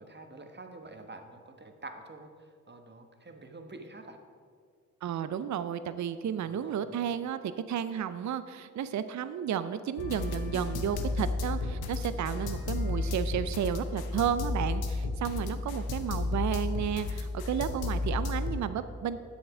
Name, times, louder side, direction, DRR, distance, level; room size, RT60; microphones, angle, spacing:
voice 1, 0.0-4.2 6.4-7.0 12.3-12.9 15.2-16.1, right 2 dB, 30° right, 5 dB, 1.3 m, -48 dB
voice 2, 5.0-7.4 7.7-19.2, right 8 dB, 50° right, 12 dB, 0.6 m, -32 dB
sound 1, 10.0-18.6, left 3 dB, 70° left, 0.9 m, -33 dB
8.7 x 7.8 x 4.9 m, 2.1 s
supercardioid pair, 45°, 38 cm